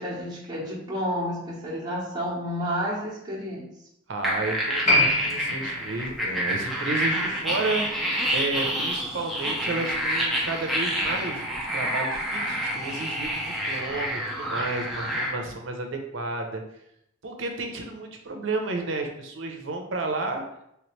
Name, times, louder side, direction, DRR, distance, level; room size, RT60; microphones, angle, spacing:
voice 1, 0.0-3.6, equal, 20° right, -6 dB, 1.0 m, -30 dB
voice 2, 4.1-16.6 17.2-20.4, right 3 dB, 70° right, 3 dB, 0.6 m, -32 dB
sound 1, 4.2-15.3, equal, ahead, 0.6 m, -28 dB
Piano, 4.8-11.8 12.1-12.2, left 1 dB, 40° left, 1.1 m, -30 dB
3.3 x 3.0 x 3.1 m, 0.78 s
head